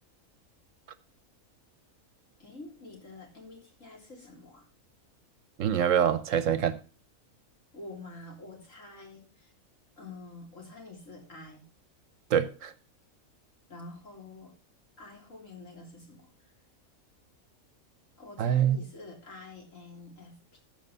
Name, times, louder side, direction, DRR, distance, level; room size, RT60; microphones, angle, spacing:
voice 1, 2.4-4.7 7.7-9.5 10.0-11.6 13.7-14.5 15.0-16.5 18.2-20.6, left 2 dB, 60° left, 3.8 m, -47 dB
voice 2, 5.6-6.8 12.3-12.7 18.4-18.8, right 9 dB, 70° right, 1.1 m, -25 dB
14.5 x 5.2 x 5.5 m
omnidirectional pair, 1.5 m